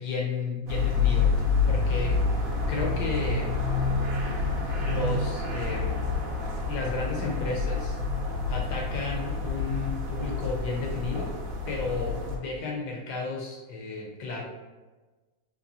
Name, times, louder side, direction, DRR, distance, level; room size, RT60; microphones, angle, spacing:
voice 1, 0.0-3.6 4.8-6.1 6.7-8.0 8.5-11.3 11.7-14.4, left 3 dB, 75° left, -1 dB, 0.9 m, -33 dB
sound 1, 0.7-12.4, left 4 dB, 70° right, 0.8 m, -28 dB
3.9 x 2.9 x 2.6 m, 1.2 s
omnidirectional pair, 2.3 m